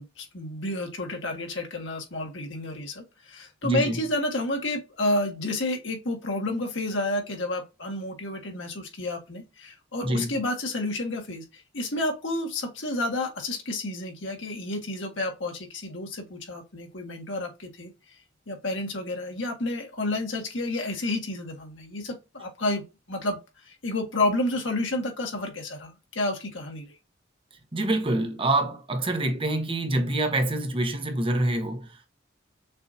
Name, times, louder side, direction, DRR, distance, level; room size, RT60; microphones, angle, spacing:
voice 1, 0.0-17.9 18.5-23.4 23.7-26.9, left 1 dB, 85° left, 1.7 m, -30 dB
voice 2, 3.6-4.0 10.0-10.4 27.7-32.1, right 1 dB, 30° right, 0.9 m, -26 dB
6.5 x 2.8 x 2.6 m
head